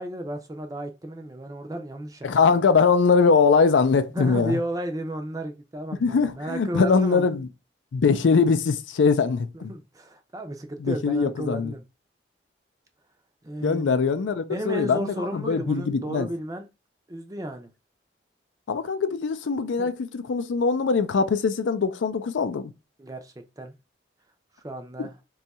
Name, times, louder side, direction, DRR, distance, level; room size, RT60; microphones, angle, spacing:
voice 1, 0.0-2.3 4.1-7.3 9.5-11.8 13.4-14.0 14.5-16.7 17.1-17.7 19.8-19.9 23.0-23.7 24.6-25.1, right 1 dB, 20° right, 0.4 m, -33 dB
voice 2, 2.2-4.6 6.0-7.5 7.9-9.7 10.8-11.7 13.6-16.3 18.7-22.7 25.0-25.1, left 5 dB, 80° left, 0.4 m, -22 dB
2.7 x 2.3 x 4.0 m
head